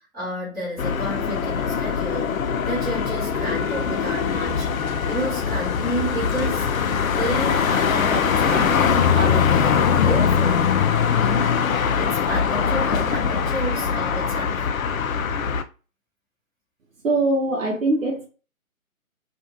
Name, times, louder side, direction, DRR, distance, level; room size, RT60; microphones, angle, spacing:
voice 1, 0.1-2.3 2.6-4.7 5.1-6.7 7.1-10.8 11.2-11.6 12.0-14.7, equal, ahead, 0.7 m, -30 dB
sound 1, 0.8-15.6, left 7 dB, 75° left, 0.5 m, -22 dB
voice 2, 17.0-18.3, right 2 dB, 70° right, 0.8 m, -22 dB
2.6 x 2.4 x 2.7 m
figure-of-eight pair, 145°, 42 cm